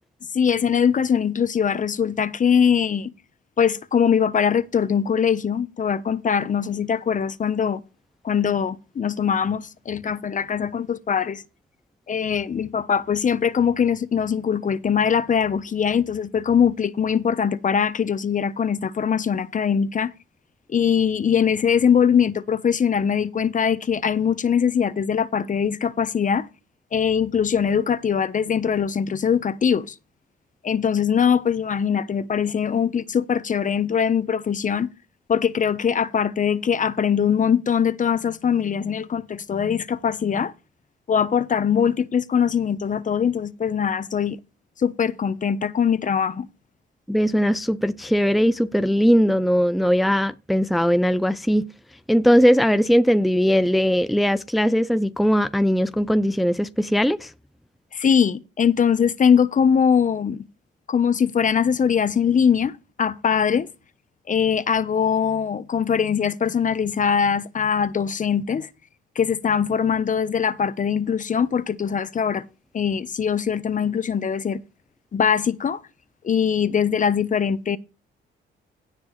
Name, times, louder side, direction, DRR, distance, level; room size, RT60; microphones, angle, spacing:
voice 1, 0.3-3.1 3.6-7.8 8.2-11.4 12.1-20.1 20.7-26.5 26.9-29.9 30.6-34.9 35.3-40.5 41.1-44.4 44.8-46.5 57.9-60.4 60.9-62.7 63.0-63.7 64.3-68.7 69.1-72.4 72.7-74.6 75.1-75.8 76.2-77.8, left 7 dB, 40° left, 0.9 m, -22 dB
voice 2, 47.1-51.6 52.1-57.3, equal, ahead, 0.6 m, -19 dB
17.0 x 6.1 x 3.2 m
cardioid pair, 90°, 20 cm